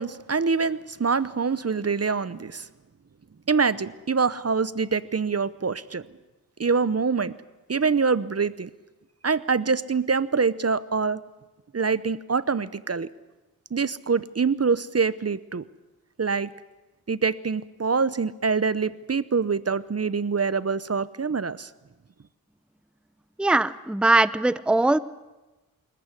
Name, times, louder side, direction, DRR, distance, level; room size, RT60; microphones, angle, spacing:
voice 1, 0.0-2.7 3.5-6.1 6.6-7.3 7.7-8.7 9.2-11.2 11.7-13.1 13.7-15.6 16.2-16.5 17.1-21.7, right 5 dB, 40° right, 17 dB, 0.8 m, -25 dB
voice 2, 23.4-25.0, right 2 dB, 5° right, 16 dB, 0.7 m, -21 dB
26.0 x 14.5 x 9.8 m, 1.1 s
cardioid pair, 55°, 36 cm